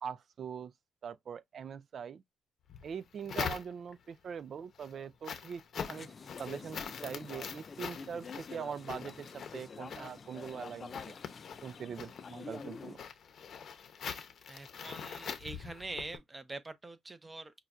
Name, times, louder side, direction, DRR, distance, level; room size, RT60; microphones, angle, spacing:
voice 1, 0.0-0.7 1.0-2.2 2.8-5.6 5.9-6.1 6.4-11.2 11.6-13.0, right 7 dB, 55° right, 0.4 m, -42 dB
sound 1, 2.7-4.1 4.6-16.2, left 7 dB, 60° left, 0.7 m, -44 dB
sound 2, 5.8-13.0, left 5 dB, 40° left, 0.4 m, -47 dB
voice 2, 14.5-17.5, right 2 dB, 20° right, 0.7 m, -44 dB
5.6 x 2.3 x 2.5 m
cardioid pair, 90°, 0 cm